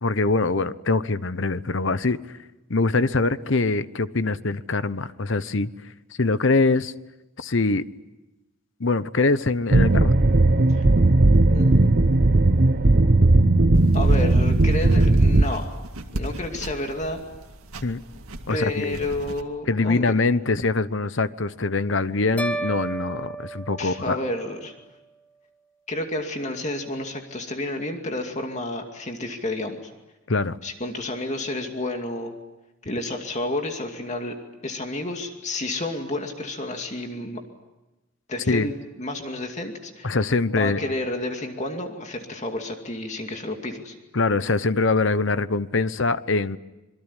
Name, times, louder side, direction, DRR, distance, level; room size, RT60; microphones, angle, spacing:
voice 1, 0.0-2.2 2.7-5.7 6.2-6.9 7.4-7.8 8.8-10.2 17.8-18.0 18.5-19.0 19.7-24.2 30.3-30.6 38.5-38.7 40.0-40.8 44.1-46.6, left 3 dB, 60° left, 15 dB, 0.9 m, -23 dB
sound 1, 9.7-15.4, right 2 dB, 45° right, 0.9 m, -17 dB
voice 2, 11.4-12.9 13.9-15.7 16.1-17.2 18.5-20.1 23.8-24.7 25.9-29.9 30.6-32.3 32.8-34.3 34.6-37.4 38.3-40.2 40.5-44.0, left 1 dB, 35° left, 4 dB, 2.4 m, -31 dB
sound 2, 13.7-19.4, right 1 dB, 85° right, 2.1 m, -38 dB
sound 3, 22.4-24.7, right 2 dB, 5° left, 1.1 m, -32 dB
26.5 x 22.5 x 9.9 m, 1.0 s
head